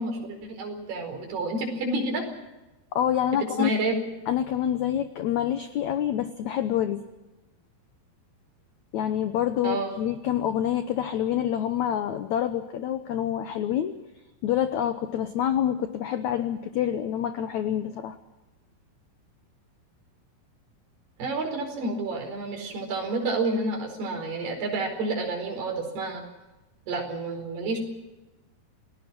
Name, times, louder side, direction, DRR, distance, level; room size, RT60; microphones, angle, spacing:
voice 1, 0.0-2.2 3.6-4.0 9.6-9.9 21.2-26.2 26.9-27.8, right 2 dB, 75° right, 3 dB, 6.6 m, -29 dB
voice 2, 2.9-3.7 4.3-7.0 8.9-13.9 14.4-18.2, left 10 dB, 90° left, 10 dB, 1.6 m, -27 dB
28.5 x 18.5 x 6.1 m, 1.1 s
omnidirectional pair, 4.6 m